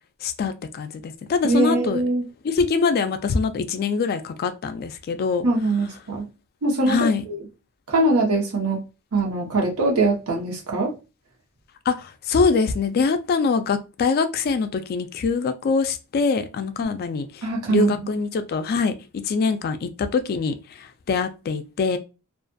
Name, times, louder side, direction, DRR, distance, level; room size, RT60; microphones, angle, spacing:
voice 1, 0.2-2.0 2.4-5.4 6.9-7.2 11.9-17.4 17.7-22.0, left 4 dB, 45° left, 0.3 m, -24 dB
voice 2, 1.4-2.2 5.4-6.3 6.6-7.4 7.9-8.8 9.1-10.9 17.4-17.9, right 2 dB, 80° right, 0.9 m, -22 dB
2.4 x 2.3 x 2.5 m
head